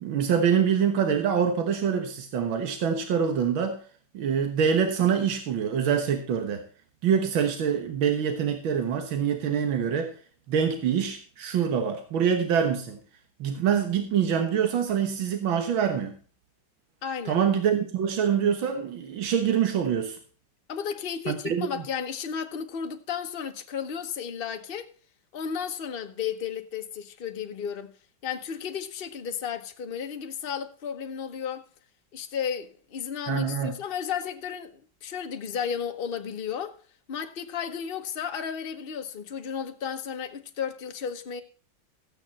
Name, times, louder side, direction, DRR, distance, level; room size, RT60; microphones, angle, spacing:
voice 1, 0.0-3.8 4.1-6.6 7.0-10.1 10.5-13.0 13.4-16.1 17.3-20.2 21.3-21.7 33.3-33.7, right 7 dB, 85° right, 2.1 m, -25 dB
voice 2, 17.0-17.4 20.7-24.9 25.3-27.9 28.2-31.7 32.1-36.8 37.1-41.4, left 7 dB, 40° left, 0.9 m, -33 dB
14.0 x 8.9 x 4.1 m
omnidirectional pair, 2.1 m